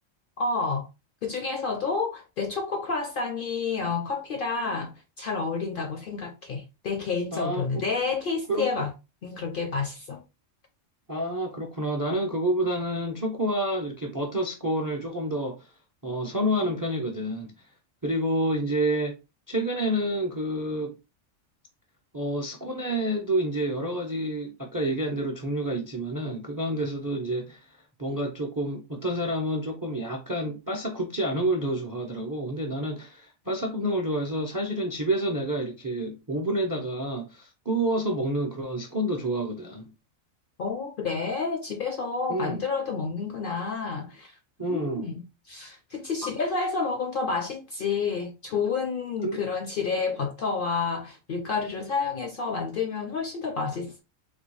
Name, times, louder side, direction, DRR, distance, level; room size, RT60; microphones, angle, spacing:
voice 1, 0.4-0.9 1.2-8.9 9.2-10.2 40.6-44.3 44.7-54.0, left 4 dB, 60° left, 0.6 m, -29 dB
voice 2, 7.3-7.8 8.5-8.7 11.1-15.7 16.0-17.5 18.0-19.1 19.5-20.9 22.1-27.6 28.0-39.9 42.3-42.6 44.6-45.1 49.2-49.4, right 1 dB, 30° right, 0.3 m, -28 dB
4.1 x 2.2 x 3.0 m
omnidirectional pair, 1.3 m